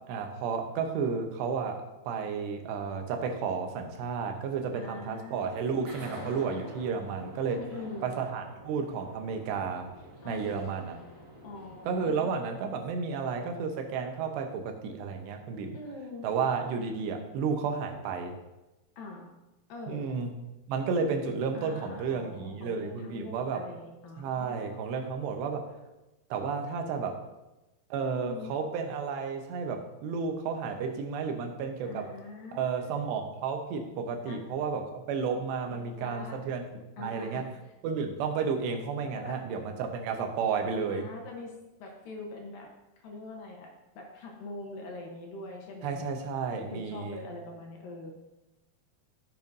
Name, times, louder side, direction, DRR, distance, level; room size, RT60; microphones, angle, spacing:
voice 1, 0.1-7.6 8.0-9.9 10.2-11.0 11.9-15.8 16.2-18.3 19.9-20.4 20.7-23.6 24.2-25.7 26.3-27.2 27.9-32.1 32.5-36.7 37.0-37.5 37.8-41.1 45.8-47.2, right 5 dB, 85° right, 4 dB, 3.1 m, -32 dB
voice 2, 4.7-5.5 7.5-8.1 10.2-10.6 11.4-12.3 15.7-16.3 19.0-19.3 19.7-20.1 21.5-24.9 28.0-28.5 31.8-33.1 34.3-34.4 35.7-36.4 37.0-37.4 39.1-39.4 40.8-41.5 41.8-42.7 43.0-46.0 46.5-48.1, left 3 dB, 70° left, 1 dB, 2.4 m, -43 dB
sound 1, 5.3-12.1, equal, 50° right, 1.4 m, -47 dB
14.5 x 7.0 x 2.7 m, 1.0 s
omnidirectional pair, 4.8 m